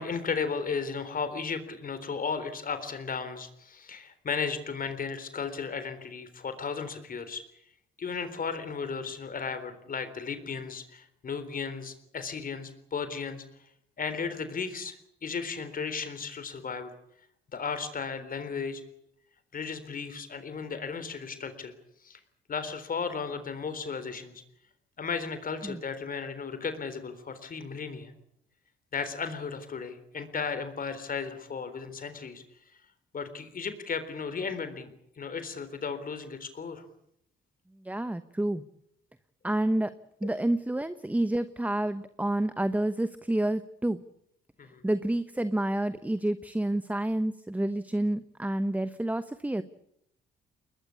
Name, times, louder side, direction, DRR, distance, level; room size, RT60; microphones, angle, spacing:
voice 1, 0.0-7.4 8.0-13.4 14.0-15.0 15.2-17.0 17.5-18.8 19.5-21.7 22.0-22.2 22.5-24.4 25.0-28.1 28.9-32.4 33.1-36.8 40.2-40.3 44.6-44.8, left 5 dB, 45° left, 11 dB, 3.8 m, -35 dB
voice 2, 37.8-38.6 39.4-39.9 40.2-44.0 44.8-49.6, right 1 dB, 5° right, 13 dB, 1.0 m, -29 dB
21.5 x 20.5 x 8.5 m, 0.74 s
cardioid pair, 90°, 20 cm